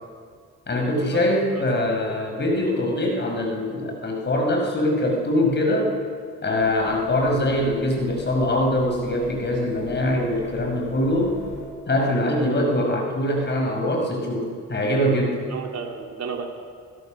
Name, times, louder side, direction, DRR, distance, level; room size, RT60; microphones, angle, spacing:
voice 1, 0.7-5.9 6.4-11.4 11.9-15.4, left 1 dB, 35° left, 1 dB, 5.5 m, -23 dB
voice 2, 1.5-1.9 15.5-16.5, right 5 dB, 60° right, 1 dB, 3.4 m, -33 dB
sound 1, 6.6-11.7, left 3 dB, 85° left, 5.0 m, -40 dB
26.5 x 16.0 x 6.5 m, 2.1 s
cardioid pair, 90°, 30 cm